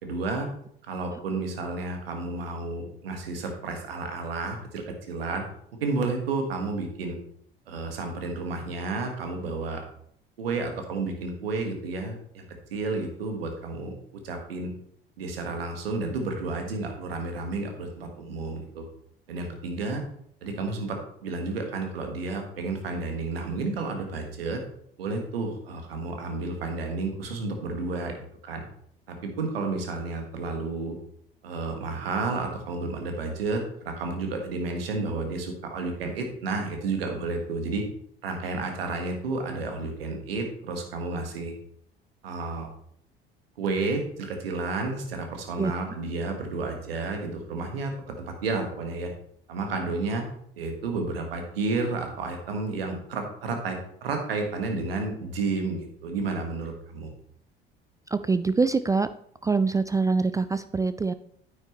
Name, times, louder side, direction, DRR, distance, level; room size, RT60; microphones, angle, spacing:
voice 1, 0.0-0.5 0.9-5.4 5.8-7.2 7.7-9.8 10.4-12.4 12.7-14.7 15.2-18.8 19.3-20.0 20.4-24.6 25.0-28.2 28.4-28.6 29.1-31.0 31.4-37.8 38.2-41.5 42.2-42.7 43.6-47.9 48.3-49.1 49.5-50.2 50.6-57.1, right 3 dB, 80° right, 4 dB, 1.5 m, -31 dB
voice 2, 58.1-59.1 59.4-61.1, right 4 dB, 10° right, 12 dB, 0.3 m, -24 dB
9.2 x 8.5 x 3.1 m, 0.66 s
figure-of-eight pair, 60°, 29 cm